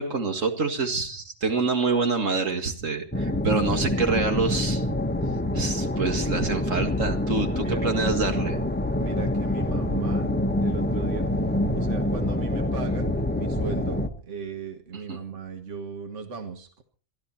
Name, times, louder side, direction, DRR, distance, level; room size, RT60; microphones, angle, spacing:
voice 1, 0.0-4.8 5.5-8.6 15.1-15.2, right 4 dB, 90° right, 6 dB, 2.4 m, -26 dB
sound 1, 3.1-14.1, left 1 dB, 10° left, 1.3 m, -26 dB
voice 2, 8.9-10.3 10.6-11.3 11.7-16.8, right 5 dB, 70° right, 7 dB, 1.8 m, -37 dB
23.5 x 13.5 x 4.4 m, 0.41 s
omnidirectional pair, 1.3 m